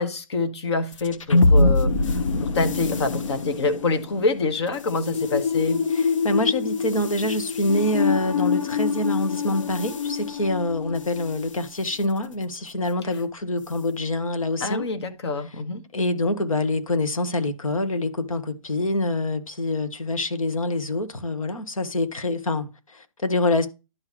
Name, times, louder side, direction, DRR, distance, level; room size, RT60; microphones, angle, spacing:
voice 1, 0.0-5.8 13.0-13.1 14.6-15.8, left 3 dB, 50° left, 1.4 m, -26 dB
sound 1, 0.9-11.4, left 3 dB, 70° left, 1.1 m, -24 dB
voice 2, 5.9-14.9 15.9-23.7, left 2 dB, 85° left, 1.4 m, -26 dB
11.5 x 3.9 x 3.0 m
hypercardioid pair, 150°, 17 cm